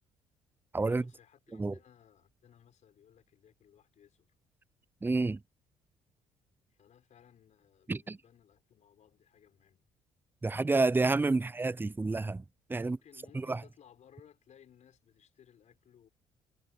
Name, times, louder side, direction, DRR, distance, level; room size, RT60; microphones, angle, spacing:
voice 1, 0.8-4.3 6.7-9.9 12.7-16.1, left 9 dB, 60° left, 5.0 m, -61 dB
voice 2, 5.0-5.4 7.9-8.2 10.4-12.4 12.7-13.0 13.5-13.6, right 3 dB, 15° right, 0.5 m, -29 dB
hypercardioid pair, 55°, 14 cm